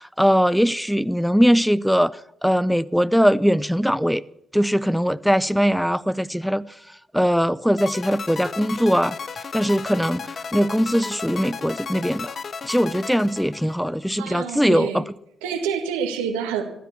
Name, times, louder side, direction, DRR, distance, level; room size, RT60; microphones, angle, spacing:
voice 1, 0.0-4.2 4.5-12.3 12.6-15.0, equal, ahead, 0.5 m, -21 dB
sound 1, 7.8-14.1, left 5 dB, 50° left, 0.8 m, -34 dB
voice 2, 14.2-15.0 15.4-16.7, right 7 dB, 85° right, 1.9 m, -27 dB
15.0 x 12.5 x 7.2 m
hypercardioid pair, 45°, 0 cm